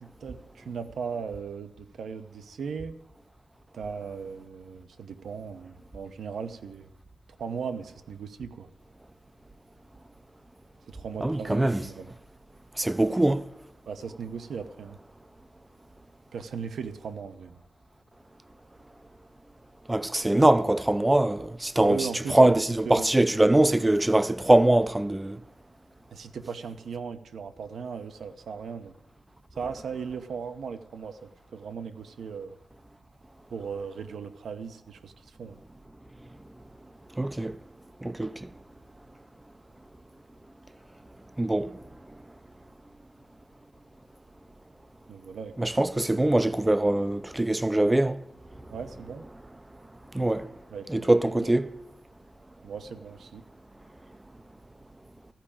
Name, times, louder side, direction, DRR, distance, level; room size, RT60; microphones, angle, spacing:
voice 1, 0.0-3.0 3.7-6.9 7.4-8.7 10.8-12.1 13.9-15.0 16.3-17.6 21.8-23.1 26.1-28.9 29.6-32.6 33.5-35.6 45.1-45.7 48.7-49.3 50.7-51.1 51.4-51.5 52.6-53.4, right 6 dB, 80° right, 0.9 m, -37 dB
voice 2, 11.2-11.8 12.8-13.5 19.9-25.4 37.2-37.6 38.0-38.5 41.4-41.8 45.6-48.2 50.1-50.5 50.9-51.7, right 1 dB, 10° right, 0.4 m, -23 dB
14.5 x 5.0 x 8.6 m
wide cardioid pair, 135°, 0 cm